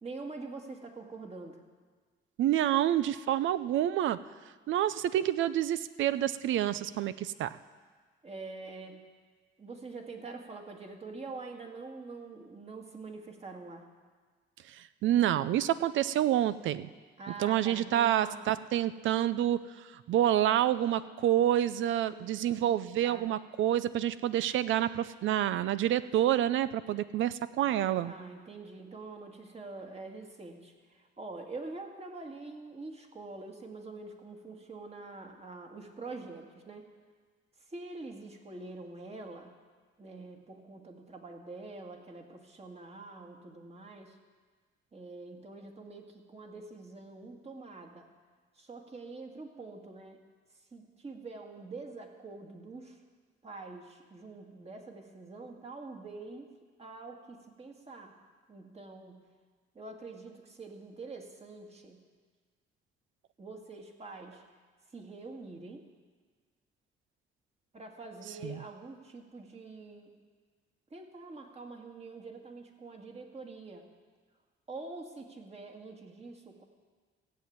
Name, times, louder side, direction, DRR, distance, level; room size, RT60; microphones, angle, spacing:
voice 1, 0.0-1.6 8.2-9.0 9.6-13.9 17.2-18.4 22.1-22.7 23.0-23.3 27.9-36.9 37.6-39.5 40.0-44.2 44.9-48.1 48.5-50.2 50.7-53.0 53.4-56.5 56.8-58.2 58.5-59.2 59.7-62.0 63.4-64.4 64.9-65.8 67.7-70.1 70.9-73.8 74.7-76.6, right 3 dB, 30° right, 3 dB, 2.1 m, -45 dB
voice 2, 2.4-4.2 4.7-7.6 14.7-16.9 17.4-28.1 68.4-68.6, right 12 dB, 75° right, 15 dB, 0.6 m, -28 dB
15.5 x 7.7 x 8.7 m, 1.5 s
cardioid pair, 90°, 20 cm